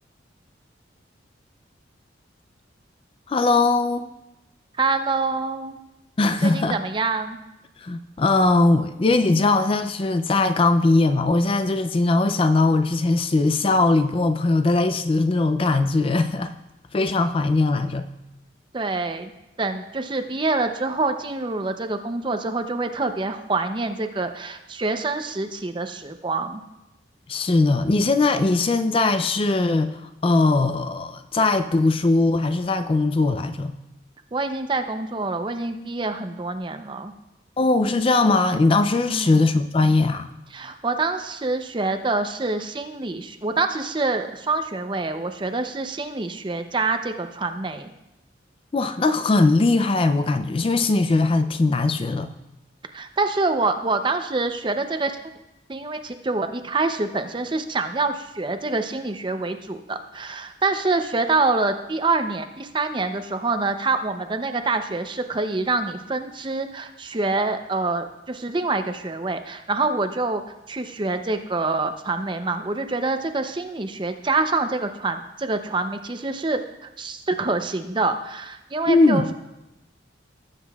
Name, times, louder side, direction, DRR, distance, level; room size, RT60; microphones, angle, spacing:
voice 1, 3.3-4.1 6.2-6.8 7.8-16.5 16.9-18.1 27.3-33.7 37.6-40.3 48.7-52.3 78.9-79.3, left 3 dB, 30° left, 10 dB, 0.4 m, -20 dB
voice 2, 4.8-5.8 6.4-7.4 18.7-19.3 19.6-26.6 34.3-37.1 39.1-39.5 40.5-47.9 52.9-55.1 55.7-70.4 70.7-79.3, right 3 dB, 25° right, 7 dB, 0.6 m, -26 dB
18.0 x 7.6 x 2.3 m, 0.94 s
head